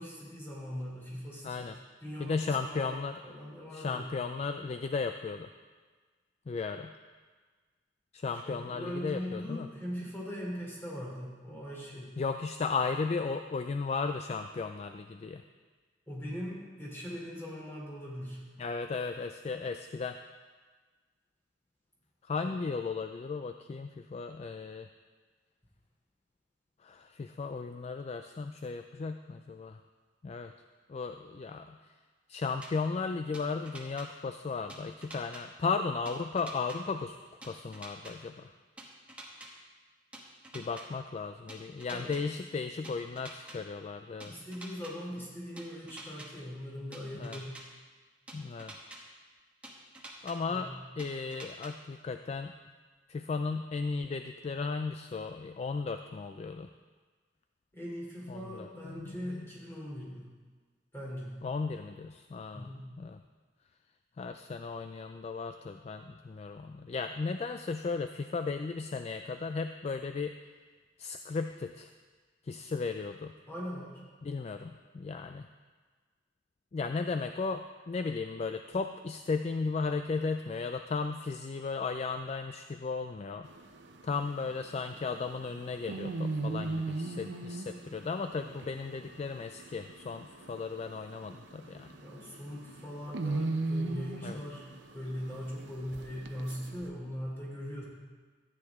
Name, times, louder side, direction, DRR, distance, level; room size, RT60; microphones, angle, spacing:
voice 1, 0.0-1.7 2.0-3.0 3.2-4.1 8.3-12.1 16.1-18.4 22.4-22.6 41.9-42.1 44.2-47.5 50.5-50.8 57.7-60.3 60.9-61.4 62.5-62.8 73.5-74.0 92.0-94.6 94.9-97.8, equal, 15° left, -5 dB, 3.0 m, -40 dB
voice 2, 1.4-1.8 2.2-3.2 3.7-5.5 6.5-6.9 8.1-9.7 12.2-15.4 18.6-20.2 22.2-24.9 26.8-29.8 30.2-30.5 30.9-31.8 32.3-37.2 37.4-38.5 40.5-44.3 47.1-47.4 48.3-48.8 50.2-52.5 53.1-56.7 58.3-59.4 61.4-62.7 63.0-63.2 64.2-70.3 71.0-71.9 72.4-73.3 74.2-75.5 76.7-83.5 84.0-92.0 94.2-94.4, left 4 dB, 35° left, 7 dB, 0.3 m, -35 dB
sound 1, 32.6-32.7 33.3-34.1 34.7-35.4 36.1-36.8 37.4-38.1 38.8-39.5 40.1-40.9 41.5-42.2 42.8-43.6 44.2-44.9 45.6-46.3 46.9-47.6 48.3-49.0 49.6-50.4 51.0-51.7, right 1 dB, 5° right, 1.2 m, -47 dB
sound 2, 83.4-96.9, right 2 dB, 70° right, 0.7 m, -39 dB
13.5 x 9.3 x 3.6 m, 1.4 s
head